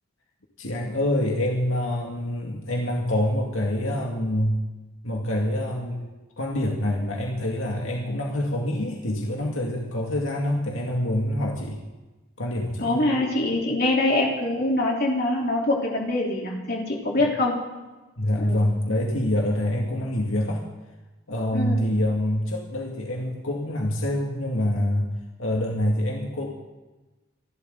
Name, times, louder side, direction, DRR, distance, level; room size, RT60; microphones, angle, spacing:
voice 1, 0.6-4.6 5.0-6.1 6.4-11.8 12.4-13.1 17.2-17.3 18.2-20.6 21.3-25.1 25.4-26.5, left 1 dB, 85° left, -1 dB, 2.2 m, -26 dB
voice 2, 12.8-17.6 18.4-18.6 21.5-21.8, left 2 dB, 50° left, -1 dB, 3.6 m, -24 dB
27.5 x 12.0 x 3.9 m, 1.2 s
head